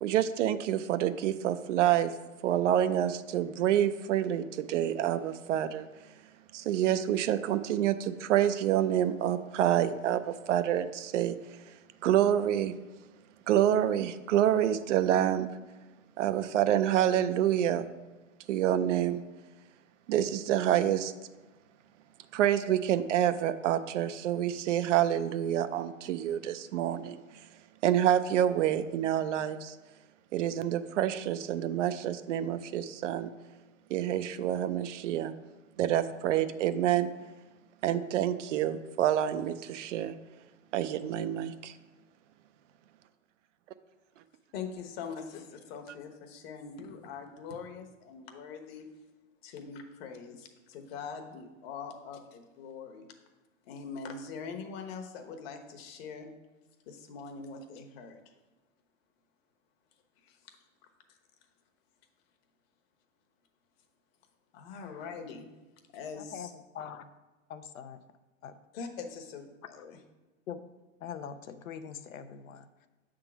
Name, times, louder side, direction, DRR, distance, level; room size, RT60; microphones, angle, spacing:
voice 1, 0.0-2.1 2.4-5.9 6.5-11.4 12.0-12.7 13.5-15.5 16.2-17.9 18.5-19.2 20.1-21.1 22.3-27.2 27.8-29.8 30.3-33.3 33.9-35.3 35.8-37.1 37.8-40.2 40.7-41.7, right 11 dB, 65° right, 12 dB, 0.6 m, -27 dB
voice 2, 44.5-48.9 49.4-53.1 53.7-56.3 56.9-58.3 60.2-60.4 64.5-65.5 65.9-66.5 68.7-70.0, left 5 dB, 45° left, 4 dB, 1.1 m, -43 dB
voice 3, 66.1-66.5 66.7-67.1 67.5-68.0 68.4-68.6 70.5-70.6 71.0-72.9, left 8 dB, 80° left, 10 dB, 0.7 m, -42 dB
6.8 x 3.8 x 6.0 m, 1.2 s
hypercardioid pair, 125°, 40 cm